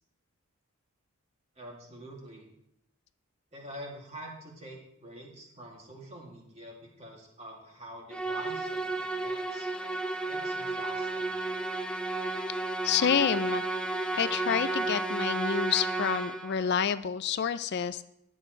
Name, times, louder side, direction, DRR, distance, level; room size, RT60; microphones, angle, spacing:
voice 1, 1.6-2.5 3.5-9.7 10.3-11.4, right 1 dB, 30° right, -2 dB, 2.6 m, -46 dB
Musical instrument, 8.1-16.6, right 2 dB, 5° left, 0.6 m, -32 dB
voice 2, 12.8-13.6 14.1-18.0, left 7 dB, 50° left, 14 dB, 0.4 m, -28 dB
20.0 x 7.6 x 3.3 m, 0.79 s
head